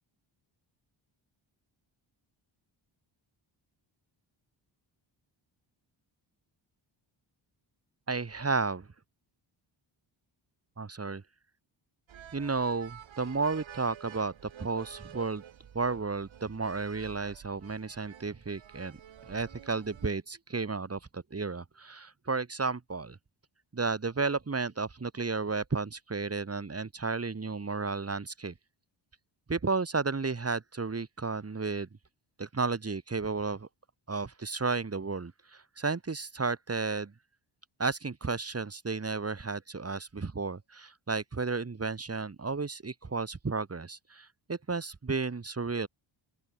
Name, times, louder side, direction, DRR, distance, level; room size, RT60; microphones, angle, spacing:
voice 1, 8.1-8.9 10.8-11.2 12.3-14.3 14.6-15.4 15.7-19.0 19.3-23.2 23.7-28.5 29.5-31.9 32.4-33.7 34.1-37.1 37.8-45.9, right 4 dB, 30° right, 3.8 m, -33 dB
sound 1, 12.1-20.1, right 9 dB, 75° right, 4.2 m, -50 dB
open air
cardioid pair, 105°, 47 cm